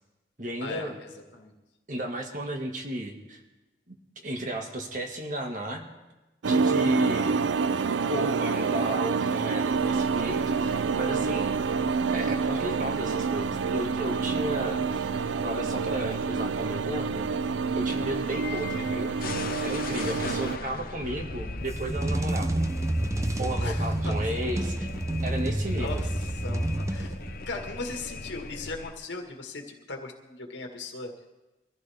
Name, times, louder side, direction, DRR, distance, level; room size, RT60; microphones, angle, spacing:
voice 1, 0.4-1.0 1.9-3.4 3.9-4.0 4.2-5.8 6.5-7.4 7.9-11.5 12.1-15.1 15.4-17.3 17.7-19.2 19.6-22.6 23.4-24.9 25.2-26.0, right 1 dB, 45° right, 2 dB, 1.9 m, -34 dB
sound 1, 6.4-20.6, right 5 dB, 85° right, 0.5 m, -28 dB
sound 2, 9.7-28.9, left 2 dB, 50° left, 0.8 m, -40 dB
sound 3, 21.6-27.6, right 1 dB, 15° right, 0.5 m, -29 dB
voice 2, 23.6-24.2 25.8-26.1 26.4-27.1 27.5-31.1, left 3 dB, 80° left, 2 dB, 1.8 m, -38 dB
23.5 x 14.5 x 3.6 m, 1.1 s
head